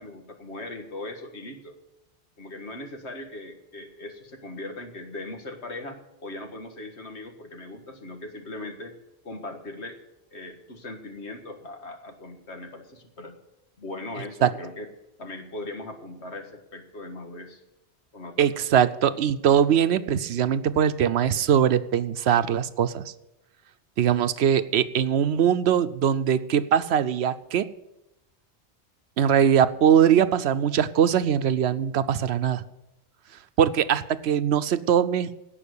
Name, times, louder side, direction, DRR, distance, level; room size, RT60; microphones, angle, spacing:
voice 1, 0.0-1.7 2.4-8.9 9.2-10.0 10.3-13.4 13.8-14.9 15.2-17.6 18.1-18.5, left 2 dB, 85° left, 4 dB, 2.0 m, -39 dB
voice 2, 18.4-23.1 24.0-27.7 29.2-32.6 33.6-35.3, right 9 dB, 75° right, 13 dB, 0.9 m, -21 dB
17.0 x 6.0 x 8.3 m, 0.91 s
omnidirectional pair, 1.1 m